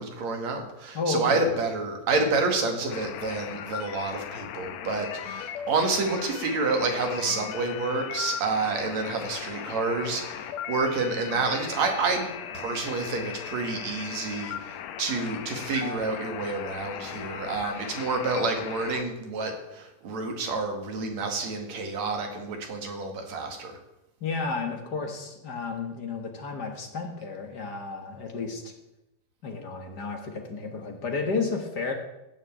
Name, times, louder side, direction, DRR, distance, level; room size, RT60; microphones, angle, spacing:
voice 1, 0.0-12.3 12.5-23.8, right 3 dB, 55° right, 4 dB, 3.1 m, -29 dB
voice 2, 0.9-1.5 24.2-28.7 29.4-31.9, left 4 dB, 50° left, 4 dB, 1.3 m, -32 dB
sound 1, 2.9-19.0, left 9 dB, 75° left, 1.7 m, -38 dB
16.5 x 6.6 x 8.5 m, 0.93 s
omnidirectional pair, 4.0 m